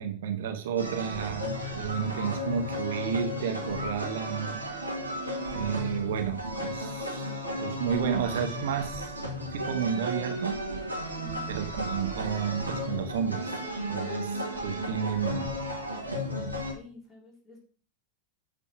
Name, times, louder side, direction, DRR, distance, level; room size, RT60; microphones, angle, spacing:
voice 1, 0.0-4.6 5.5-9.2 9.5-10.6 11.5-13.5 13.9-15.5, right 7 dB, 55° right, 6 dB, 1.1 m, -31 dB
sound 1, 0.8-16.7, equal, 90° right, 2.2 m, -34 dB
voice 2, 11.2-11.5 16.3-17.6, left 3 dB, 5° left, -4 dB, 3.6 m, -50 dB
9.0 x 4.1 x 6.0 m, 0.41 s
figure-of-eight pair, 90°, 0 cm